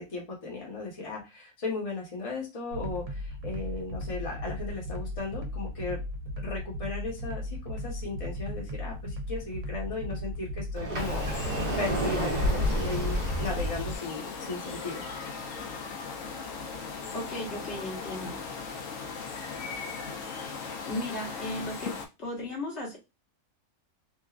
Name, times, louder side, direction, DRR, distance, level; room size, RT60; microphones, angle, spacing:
voice 1, 0.0-6.0 6.4-11.3 11.8-15.0, left 3 dB, 30° left, -2 dB, 1.0 m, -36 dB
sound 1, 2.7-14.0, left 1 dB, 75° right, 1.0 m, -36 dB
Sliding door, 10.8-13.8, equal, 40° right, 0.7 m, -29 dB
sound 2, 10.9-22.1, left 5 dB, 75° left, 1.0 m, -38 dB
voice 2, 17.1-18.4 20.9-23.0, left 1 dB, 55° left, -4 dB, 1.3 m, -36 dB
2.9 x 2.3 x 2.4 m, 0.25 s
omnidirectional pair, 1.4 m